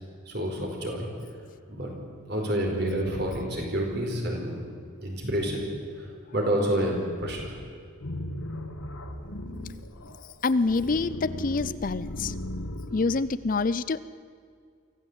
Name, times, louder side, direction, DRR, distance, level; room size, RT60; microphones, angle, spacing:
voice 1, 0.3-1.1 1.7-1.9 2.3-4.7 5.0-5.6 5.9-7.6, equal, 50° right, 1 dB, 4.7 m, -29 dB
sound 1, 8.0-13.2, left 1 dB, 85° left, 1.9 m, -37 dB
voice 2, 10.4-12.3 12.9-14.0, left 3 dB, 40° left, 15 dB, 0.5 m, -26 dB
24.0 x 15.5 x 8.2 m, 2.2 s
head